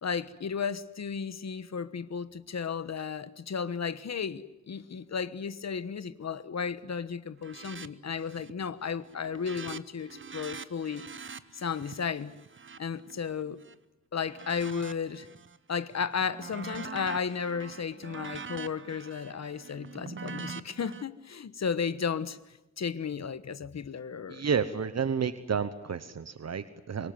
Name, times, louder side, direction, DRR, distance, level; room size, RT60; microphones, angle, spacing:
voice 1, 0.0-11.0 11.5-12.3 12.8-13.6 14.1-15.3 15.7-22.4 22.8-24.4, left 6 dB, 65° left, 1.2 m, -34 dB
sound 1, 7.4-7.9 8.2-8.6 8.9-13.7 14.2-15.6 15.9-21.0, right 5 dB, 40° right, 1.0 m, -44 dB
voice 2, 24.3-27.1, right 6 dB, 60° right, 1.1 m, -30 dB
25.5 x 23.0 x 9.5 m
wide cardioid pair, 160°, 29 cm